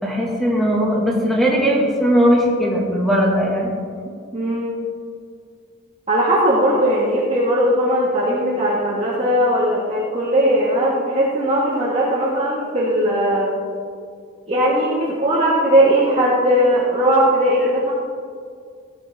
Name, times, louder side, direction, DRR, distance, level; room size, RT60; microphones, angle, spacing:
voice 1, 0.0-3.7, equal, ahead, -3 dB, 2.2 m, -18 dB
voice 2, 4.0-4.7 6.1-13.5 14.5-17.9, equal, 30° right, -7 dB, 2.3 m, -18 dB
17.0 x 12.0 x 3.8 m, 2.2 s
head